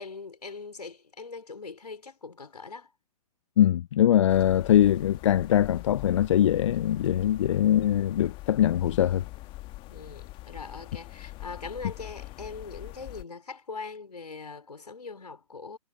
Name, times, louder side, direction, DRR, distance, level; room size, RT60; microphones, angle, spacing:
voice 1, 0.0-2.9 9.9-15.8, left 4 dB, 80° left, 3.8 m, -41 dB
voice 2, 3.6-9.2, left 11 dB, 50° left, 0.5 m, -22 dB
sound 1, 4.3-13.2, left 19 dB, 25° left, 1.5 m, -43 dB
figure-of-eight pair, 120°, 20 cm